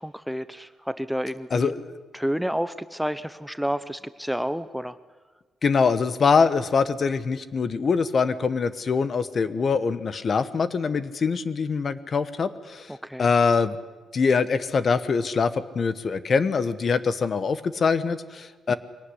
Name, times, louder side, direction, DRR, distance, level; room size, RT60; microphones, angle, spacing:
voice 1, 0.0-1.7 2.1-5.0 12.9-13.3 18.7-18.8, equal, ahead, 13 dB, 0.6 m, -30 dB
voice 2, 1.5-2.0 5.6-12.9 13.2-13.8 14.1-18.7, left 5 dB, 45° left, 14 dB, 1.1 m, -23 dB
22.5 x 18.0 x 9.9 m, 1.4 s
cardioid pair, 120°, 0 cm